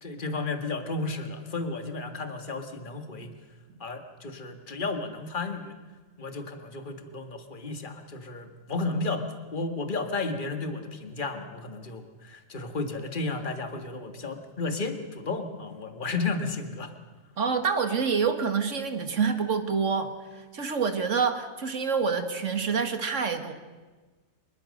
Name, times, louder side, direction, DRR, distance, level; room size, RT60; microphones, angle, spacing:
voice 1, 0.0-3.3 3.8-5.7 6.2-9.3 9.5-16.9, left 3 dB, 40° left, 6 dB, 2.0 m, -33 dB
voice 2, 17.4-23.5, right 5 dB, 70° right, 8 dB, 2.1 m, -27 dB
25.5 x 22.5 x 6.5 m, 1.3 s
omnidirectional pair, 1.3 m